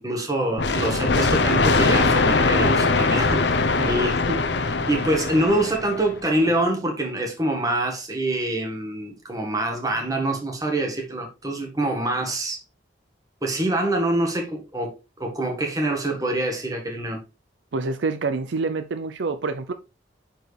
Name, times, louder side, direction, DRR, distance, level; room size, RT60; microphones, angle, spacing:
voice 1, 0.0-12.6 13.4-17.2, right 1 dB, 20° right, 1.7 m, -25 dB
sound 1, 0.6-6.2, left 3 dB, 65° left, 0.8 m, -21 dB
voice 2, 17.7-19.7, right 3 dB, 75° right, 0.6 m, -27 dB
9.0 x 4.6 x 3.4 m
head